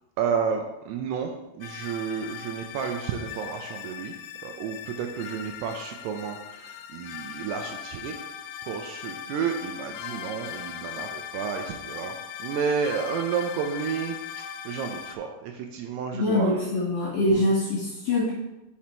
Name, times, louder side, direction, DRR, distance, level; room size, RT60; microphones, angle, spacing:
voice 1, 0.2-4.2 4.4-8.2 8.6-16.6 17.2-17.4, right 6 dB, 80° right, 4 dB, 2.5 m, -31 dB
sound 1, 1.6-15.2, left 9 dB, 85° left, 2.6 m, -39 dB
voice 2, 16.1-18.3, left 1 dB, 50° left, -9 dB, 2.2 m, -24 dB
5.8 x 5.0 x 4.3 m, 0.96 s
omnidirectional pair, 5.0 m